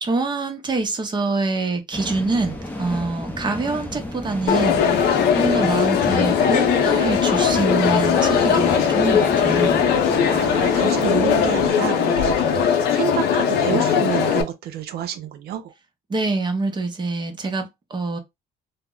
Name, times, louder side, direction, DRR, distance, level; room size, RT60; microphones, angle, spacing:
voice 1, 0.0-9.8 16.1-18.2, right 3 dB, 25° right, 0.7 m, -25 dB
sound 1, 1.9-11.7, left 1 dB, 10° left, 0.6 m, -32 dB
Crowd, 4.5-14.4, left 7 dB, 75° left, 0.6 m, -19 dB
voice 2, 10.3-15.7, right 10 dB, 70° right, 0.5 m, -29 dB
2.1 x 2.0 x 3.6 m
cardioid pair, 110°, 17 cm